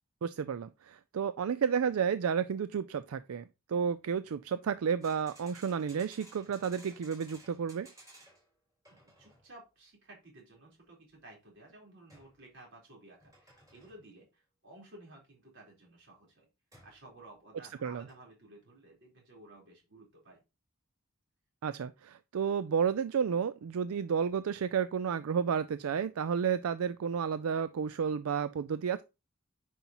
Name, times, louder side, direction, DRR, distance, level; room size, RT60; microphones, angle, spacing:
voice 1, 0.2-7.9 17.8-18.0 21.6-29.0, right 7 dB, 80° right, 0.4 m, -31 dB
sound 1, 5.0-8.5 8.8-9.5 12.1-12.4 13.2-14.1 16.7-17.0 17.9-18.1, right 1 dB, 15° right, 4.2 m, -57 dB
voice 2, 8.9-16.5 16.8-20.4, right 2 dB, 55° right, 4.0 m, -55 dB
9.3 x 5.6 x 2.9 m
head